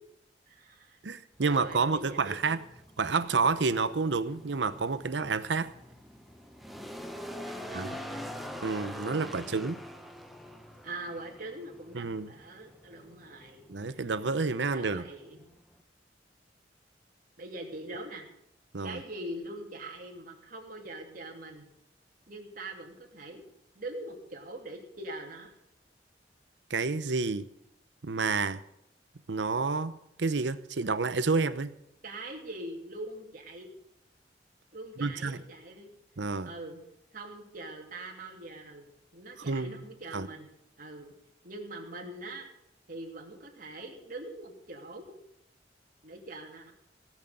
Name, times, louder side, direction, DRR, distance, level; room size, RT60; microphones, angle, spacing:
voice 1, 0.5-1.0 1.4-2.6 7.4-8.3 8.9-9.7 10.8-14.0 14.7-15.4 17.4-18.3 18.8-21.7 22.3-23.4 23.7-25.5 32.0-33.7 34.7-35.9 36.4-36.8 37.1-38.9 39.1-40.5 40.8-41.1 41.4-42.5 42.9-45.2 46.0-46.7, right 2 dB, 50° right, 2.7 m, -43 dB
voice 2, 1.0-2.6 3.0-5.7 7.7-7.9 8.6-9.8 11.9-12.3 13.7-15.0 18.7-19.0 26.7-27.5 28.0-28.6 29.3-29.9 30.2-31.7 35.0-35.4 36.2-36.5 39.5-39.8 40.1-40.3, right 4 dB, 90° right, 0.8 m, -29 dB
sound 1, 1.3-15.8, equal, ahead, 0.9 m, -45 dB
17.5 x 6.3 x 7.8 m
head